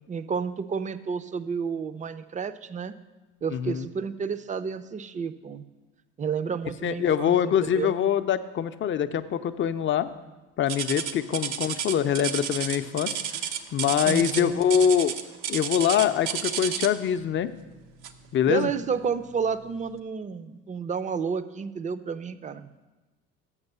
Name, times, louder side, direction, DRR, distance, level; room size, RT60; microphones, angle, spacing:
voice 1, 0.0-2.9 3.4-5.6 6.2-8.0 14.0-14.6 18.5-22.9, right 6 dB, 25° right, 13 dB, 0.5 m, -31 dB
voice 2, 3.5-3.9 6.8-10.1 10.6-13.2 13.7-15.1 15.5-17.5 18.3-18.7, left 9 dB, 40° left, 11 dB, 0.5 m, -24 dB
sound 1, 10.7-17.1 18.0-18.3 18.8-18.9 19.6-19.7, right 9 dB, 80° right, 0.7 m, -31 dB
7.3 x 6.6 x 6.6 m, 1.2 s
supercardioid pair, 85°, 30 cm